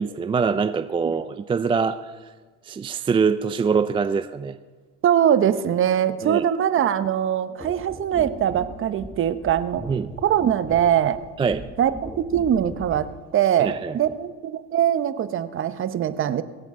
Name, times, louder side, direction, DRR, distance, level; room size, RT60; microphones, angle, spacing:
voice 1, 0.0-2.1 2.6-4.6 6.2-6.4 9.9-10.1 11.4-11.6 13.6-14.0, right 5 dB, 15° right, 11 dB, 0.3 m, -24 dB
voice 2, 5.0-9.8 10.2-11.2 11.8-16.4, right 10 dB, 40° right, 13 dB, 0.8 m, -22 dB
sound 1, 7.6-13.2 14.0-14.2, equal, 5° left, 1.6 m, -39 dB
23.5 x 8.9 x 3.7 m, 1.4 s
supercardioid pair, 95°, 34 cm